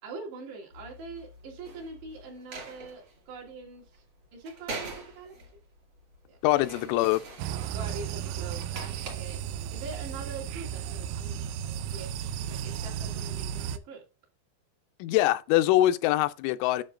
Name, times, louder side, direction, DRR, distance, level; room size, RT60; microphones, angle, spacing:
voice 1, 0.0-4.0 4.3-5.4 6.3-6.4 6.7-7.0 7.7-11.5 11.9-12.1 12.4-14.0, right 3 dB, 65° right, 4.3 m, -43 dB
sound 1, 0.7-13.5, right 2 dB, 45° right, 2.0 m, -46 dB
voice 2, 6.4-7.2 15.0-16.8, left 15 dB, 90° left, 3.0 m, -23 dB
sound 2, 7.4-13.8, right 9 dB, 90° right, 3.0 m, -34 dB
9.8 x 6.9 x 2.5 m
omnidirectional pair, 5.4 m